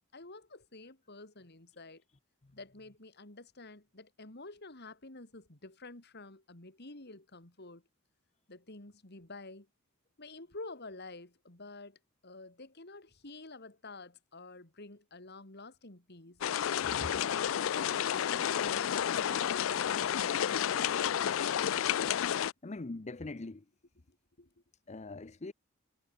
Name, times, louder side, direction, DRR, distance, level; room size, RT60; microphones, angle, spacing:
voice 1, 0.1-2.0 2.5-7.8 8.5-9.7 10.2-16.4 16.9-17.5 17.8-21.0 24.1-24.5, left 2 dB, 50° left, 3.0 m, -49 dB
sound 1, 16.4-22.5, left 9 dB, 65° left, 0.4 m, -31 dB
voice 2, 22.6-23.6 24.9-25.5, left 2 dB, 35° left, 0.7 m, -42 dB
head